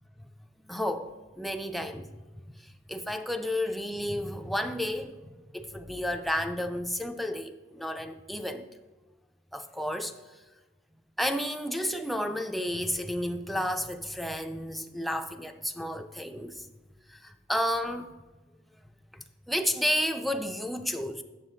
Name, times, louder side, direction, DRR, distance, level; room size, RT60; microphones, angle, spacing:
voice 1, 0.6-2.1 2.6-8.7 9.5-10.1 11.2-16.7 17.1-18.2 19.1-21.2, equal, ahead, 0.3 m, -32 dB
7.5 x 7.1 x 4.0 m
head